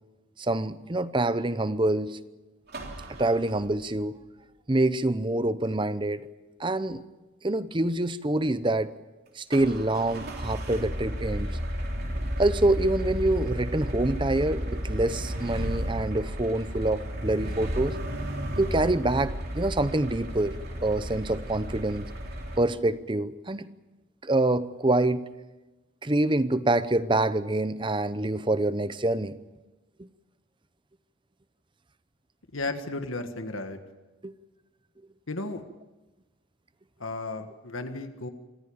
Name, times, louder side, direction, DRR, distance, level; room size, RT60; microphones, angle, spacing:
voice 1, 0.4-2.2 3.2-4.2 4.7-6.3 6.6-7.0 7.4-8.9 9.4-11.6 12.4-17.9 18.6-22.1 22.6-23.7 24.2-25.2 26.0-29.3 30.0-30.1 34.2-34.3, right 2 dB, 25° right, 14 dB, 0.7 m, -26 dB
sound 1, 2.7-4.0 9.5-22.6, equal, 50° right, 3.3 m, -33 dB
voice 2, 32.5-33.8 35.3-35.6 37.0-38.3, left 2 dB, 70° left, 7 dB, 1.6 m, -34 dB
25.5 x 15.5 x 8.7 m, 1.1 s
head